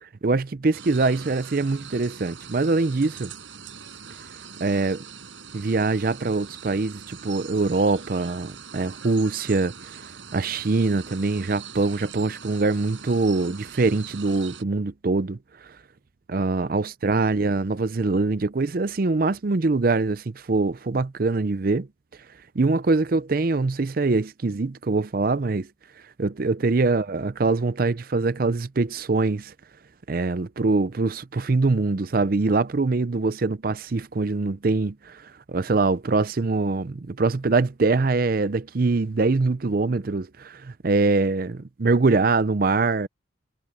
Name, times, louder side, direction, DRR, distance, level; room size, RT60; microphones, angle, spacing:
voice 1, 0.2-3.3 4.6-5.0 5.5-10.1 10.3-15.8 16.3-21.9 22.5-25.7 26.2-29.5 30.1-43.1, right 3 dB, 45° right, 0.5 m, -23 dB
sound 1, 0.7-14.6, right 6 dB, 70° right, 5.1 m, -42 dB
head